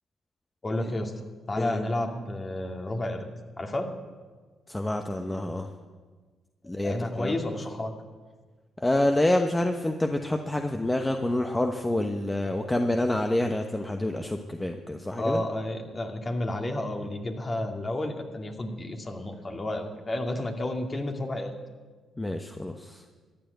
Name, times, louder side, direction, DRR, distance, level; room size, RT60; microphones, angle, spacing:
voice 1, 0.6-1.1 1.5-3.3 3.6-3.9 6.8-7.9 15.2-21.6, left 1 dB, 35° left, 3 dB, 2.3 m, -31 dB
voice 2, 4.7-5.7 6.7-7.4 8.8-15.4 22.2-23.0, left 1 dB, 15° left, 4 dB, 1.1 m, -27 dB
14.0 x 10.5 x 8.1 m, 1.4 s
supercardioid pair, 50°, 0 cm